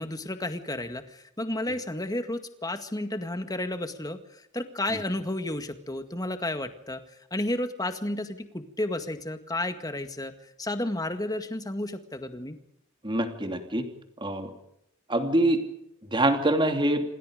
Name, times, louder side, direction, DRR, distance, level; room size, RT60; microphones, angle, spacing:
voice 1, 0.0-7.0 7.3-12.6, left 1 dB, 15° left, 8 dB, 2.0 m, -32 dB
voice 2, 13.0-13.9 14.2-14.5 15.1-15.6 16.1-17.0, right 1 dB, 20° right, 6 dB, 3.0 m, -24 dB
27.5 x 26.5 x 5.2 m, 0.78 s
head